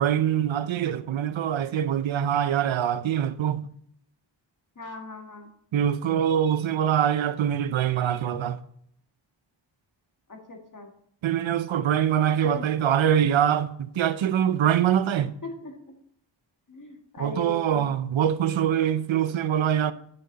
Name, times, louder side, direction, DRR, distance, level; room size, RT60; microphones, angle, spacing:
voice 1, 0.0-3.7 5.7-8.6 11.2-15.3 17.2-19.9, right 9 dB, 85° right, 0.6 m, -24 dB
voice 2, 4.8-5.5 10.3-10.9 12.4-12.7 15.2-15.8 16.7-18.0, left 1 dB, 45° left, 1.9 m, -39 dB
10.0 x 6.5 x 4.0 m
wide cardioid pair, 125°, 45 cm